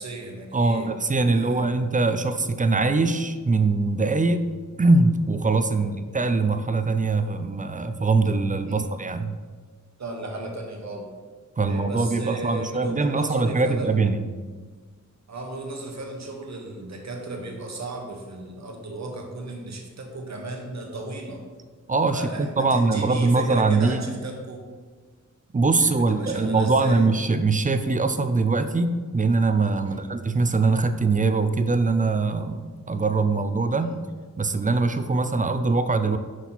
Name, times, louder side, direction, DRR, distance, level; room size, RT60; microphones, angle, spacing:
voice 1, 0.0-0.9 1.2-1.8 5.8-5.9 8.7-8.8 10.0-11.0 11.6-14.0 15.3-21.4 22.1-24.6 25.8-27.1 29.8-30.1 33.8-34.0, right 2 dB, 60° right, 2 dB, 1.2 m, -35 dB
voice 2, 0.5-4.5 4.8-9.4 11.6-14.2 21.9-24.1 25.5-34.0 34.4-36.2, right 3 dB, 25° right, 9 dB, 0.4 m, -22 dB
6.1 x 5.8 x 4.1 m, 1.5 s
wide cardioid pair, 110°, 30 cm